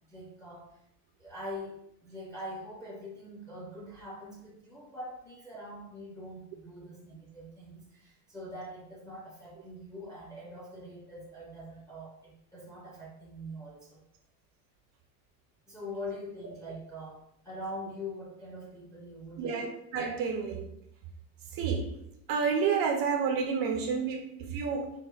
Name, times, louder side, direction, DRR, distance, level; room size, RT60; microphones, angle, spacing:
voice 1, 0.1-0.8 1.2-14.0 15.7-19.8, left 1 dB, 10° left, -4 dB, 0.5 m, -43 dB
voice 2, 19.4-20.7 21.5-22.0 22.3-24.9, right 6 dB, 55° right, 2 dB, 0.5 m, -30 dB
4.4 x 2.0 x 2.3 m, 0.78 s
cardioid pair, 125°, 42 cm